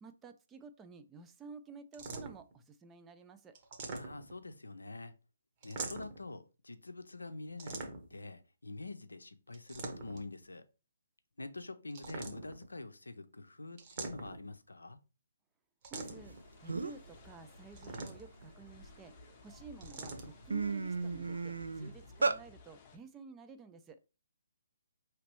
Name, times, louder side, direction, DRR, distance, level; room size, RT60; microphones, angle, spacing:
voice 1, 0.0-3.6 15.9-19.1 19.4-24.0, right 4 dB, 15° right, 0.4 m, -52 dB
sound 1, 1.9-2.5 3.6-4.4 5.6-6.3 7.6-8.2 9.5-10.3 11.9-12.7 13.8-14.5 15.8-16.4 17.7-18.4 19.8-20.3, right 3 dB, 35° right, 0.9 m, -43 dB
voice 2, 3.9-5.1 5.6-10.6 11.4-15.0, left 2 dB, 85° left, 0.5 m, -46 dB
sound 2, 16.0-23.0, left 4 dB, 25° left, 0.7 m, -58 dB
sound 3, 16.3-16.4 16.7-17.1 17.6-19.1 19.7-19.9 20.2-22.4, right 4 dB, 80° right, 0.4 m, -35 dB
4.9 x 3.1 x 3.0 m
figure-of-eight pair, 140°, 0 cm